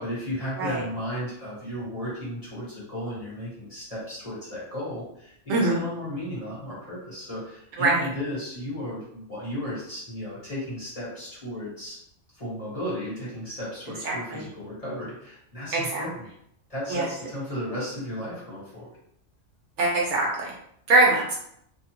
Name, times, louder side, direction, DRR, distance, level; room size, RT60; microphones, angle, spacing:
voice 1, 0.0-12.0 12.3-16.3 16.7-18.9, left 1 dB, 30° left, -8 dB, 1.1 m, -34 dB
voice 2, 5.5-5.8 7.8-8.1 14.0-14.4 15.7-16.1 16.9-17.1 19.8-20.5 20.9-21.3, right 2 dB, 65° right, -2 dB, 0.9 m, -23 dB
2.7 x 2.2 x 2.9 m, 0.72 s
omnidirectional pair, 1.4 m